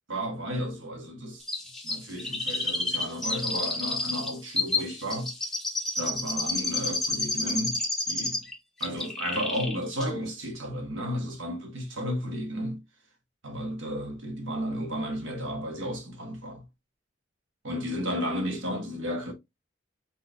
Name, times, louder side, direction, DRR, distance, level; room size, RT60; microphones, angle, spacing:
voice 1, 0.1-1.5 1.8-5.3 6.0-8.4 8.8-12.8 13.4-16.6 17.6-19.3, equal, 90° right, 1.3 m, -33 dB
Chirp tweet, 1.5-8.5 8.8-9.8 10.0-10.1, left 3 dB, ahead, 0.9 m, -30 dB
4.3 x 4.1 x 2.5 m
head